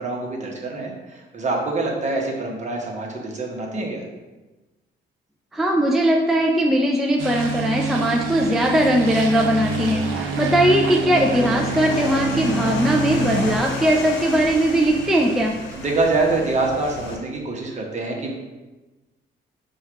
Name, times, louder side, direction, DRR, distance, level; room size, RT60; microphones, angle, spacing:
voice 1, 0.0-4.0 15.7-18.3, right 3 dB, 35° right, -1 dB, 1.0 m, -25 dB
voice 2, 5.5-15.6, right 1 dB, ahead, 0 dB, 0.3 m, -19 dB
sound 1, 7.2-13.6, right 3 dB, 85° right, 0.6 m, -27 dB
sound 2, 8.7-13.9, equal, 25° left, 0.9 m, -42 dB
sound 3, 9.6-17.2, left 2 dB, 65° left, 0.8 m, -35 dB
4.5 x 2.4 x 4.5 m, 1.1 s
cardioid pair, 90°, 20 cm